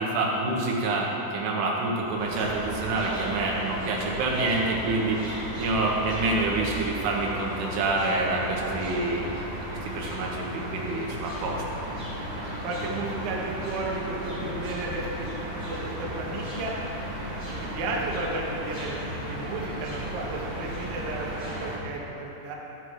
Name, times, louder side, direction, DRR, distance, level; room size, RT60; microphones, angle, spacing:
voice 1, 0.0-9.3 9.7-11.6, right 2 dB, 85° right, -2 dB, 3.9 m, -27 dB
sound 1, 2.2-21.8, equal, 10° right, 1.8 m, -35 dB
voice 2, 12.3-16.7 17.4-22.6, right 2 dB, 65° right, -2 dB, 2.7 m, -34 dB
13.0 x 9.6 x 4.8 m, 2.9 s
omnidirectional pair, 5.4 m